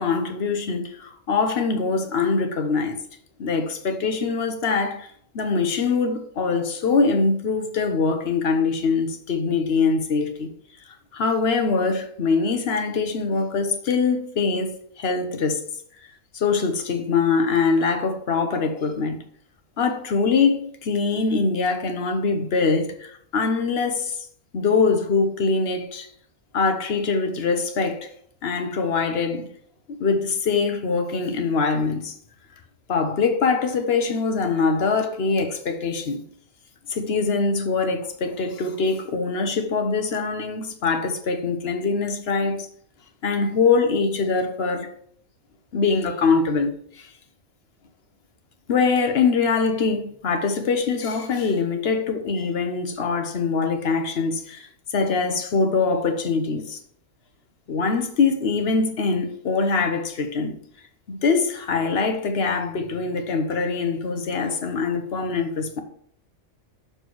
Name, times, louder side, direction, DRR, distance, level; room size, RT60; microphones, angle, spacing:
voice 1, 0.0-3.0 3.4-10.5 11.1-15.6 16.3-19.2 19.8-24.2 24.5-26.1 26.5-28.1 28.4-29.4 29.9-32.1 32.9-36.2 36.9-42.7 43.2-44.9 45.7-47.1 48.7-56.8 57.7-60.6 61.1-65.8, left 4 dB, 50° left, 1.0 m, -23 dB
6.7 x 4.5 x 4.6 m
omnidirectional pair, 1.5 m